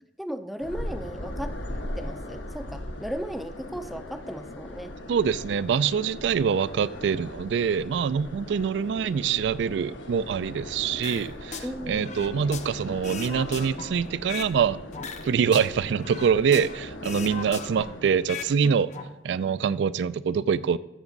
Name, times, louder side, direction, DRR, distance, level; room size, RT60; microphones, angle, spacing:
voice 1, 0.2-1.5 1.9-4.9 11.6-12.2 18.6-18.8, equal, ahead, 0.4 m, -36 dB
sound 1, 0.6-18.5, left 1 dB, 80° left, 1.2 m, -39 dB
voice 2, 5.1-14.8 15.2-18.9 19.2-20.8, right 7 dB, 70° right, 0.3 m, -25 dB
sound 2, 11.0-11.7 12.0-14.6 14.9-16.8 17.0-18.5 18.8-19.0, left 5 dB, 40° left, 0.6 m, -37 dB
14.0 x 7.1 x 3.9 m
head